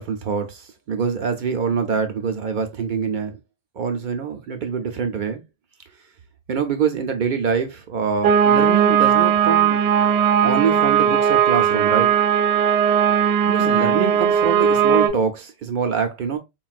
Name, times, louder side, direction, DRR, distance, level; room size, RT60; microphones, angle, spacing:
voice 1, 0.0-3.4 3.8-5.4 6.5-9.8 10.4-12.1 13.5-16.4, right 6 dB, 60° right, 0.5 m, -24 dB
sound 1, 8.2-15.1, right 8 dB, 85° right, 0.9 m, -17 dB
3.8 x 2.3 x 2.4 m
omnidirectional pair, 1.2 m